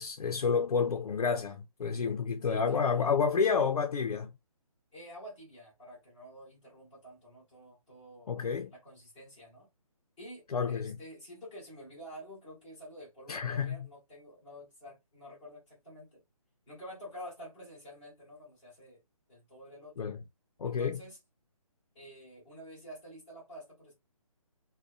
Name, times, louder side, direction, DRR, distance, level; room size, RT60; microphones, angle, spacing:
voice 1, 0.0-4.3 8.3-8.7 10.5-11.0 13.3-13.8 20.0-20.2 20.6-21.0, left 5 dB, 85° left, 0.5 m, -29 dB
voice 2, 2.4-3.5 4.9-9.7 10.2-16.2 16.7-19.0 19.3-20.1 20.6-21.2 21.9-23.9, equal, 5° left, 0.8 m, -49 dB
2.5 x 2.2 x 2.3 m
hypercardioid pair, 180°, 19 cm